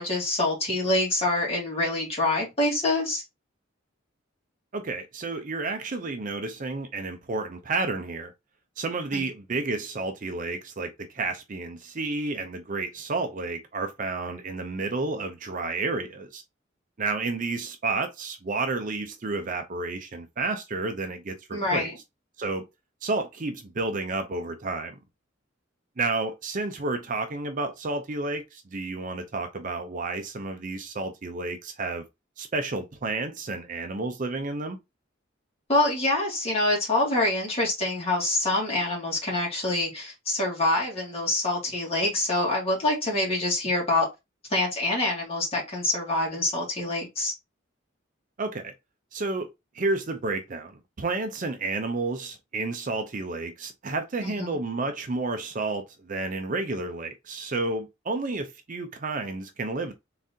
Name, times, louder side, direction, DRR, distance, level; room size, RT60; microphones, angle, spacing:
voice 1, 0.0-3.2 9.1-9.2 21.5-21.9 35.7-44.1 44.5-47.3 54.2-54.6, left 2 dB, 30° left, 2.1 m, -26 dB
voice 2, 4.7-8.3 8.8-16.4 17.0-21.9 22.4-22.6 23.0-24.9 26.0-32.0 32.4-34.8 48.4-48.7 49.1-49.5 49.7-59.9, right 3 dB, 40° right, 0.5 m, -31 dB
3.9 x 3.6 x 2.7 m
head